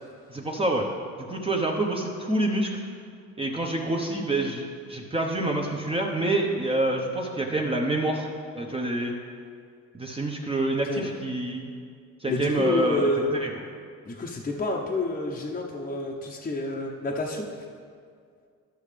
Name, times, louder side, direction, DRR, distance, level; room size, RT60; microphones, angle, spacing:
voice 1, 0.3-0.9 1.2-2.8 3.4-8.3 8.5-9.2 9.9-11.7 12.2-13.5, right 2 dB, 20° right, -1 dB, 0.9 m, -27 dB
voice 2, 12.3-13.2 14.0-17.5, left 2 dB, 25° left, -1 dB, 0.8 m, -28 dB
12.5 x 6.3 x 3.4 m, 2.2 s
cardioid pair, 90°, 30 cm